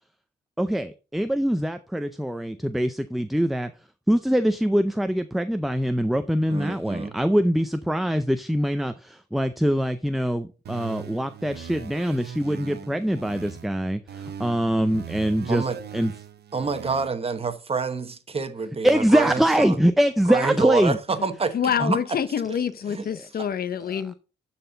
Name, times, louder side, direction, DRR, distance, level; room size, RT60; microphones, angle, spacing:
voice 1, 0.6-3.7 4.1-15.6 15.9-16.1 18.8-21.0 21.8-22.0 23.0-23.1 23.9-24.0, equal, ahead, 0.5 m, -23 dB
voice 2, 6.5-7.2 15.5-15.8 16.5-19.8 20.3-22.0 22.5-22.6 22.9-23.0 23.4-23.5, right 4 dB, 35° right, 1.0 m, -28 dB
sound 1, 10.6-13.7 14.1-17.1, right 8 dB, 65° right, 0.8 m, -40 dB
voice 3, 21.5-24.1, left 8 dB, 60° left, 0.7 m, -26 dB
12.5 x 4.4 x 3.9 m
cardioid pair, 110°, 18 cm